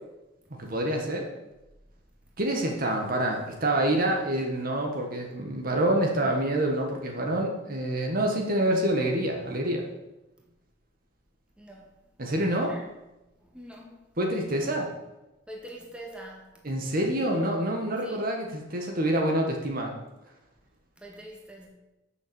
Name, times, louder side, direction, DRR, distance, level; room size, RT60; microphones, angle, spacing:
voice 1, 0.5-1.3 2.4-9.9 12.2-12.7 14.2-14.9 16.6-19.9, right 1 dB, 50° right, 1 dB, 1.6 m, -27 dB
voice 2, 11.6-11.9 12.6-12.9 13.4-14.1 15.5-16.8 18.0-18.2 21.0-21.7, right 1 dB, 5° right, -2 dB, 1.9 m, -45 dB
8.9 x 6.7 x 7.0 m, 1.0 s
head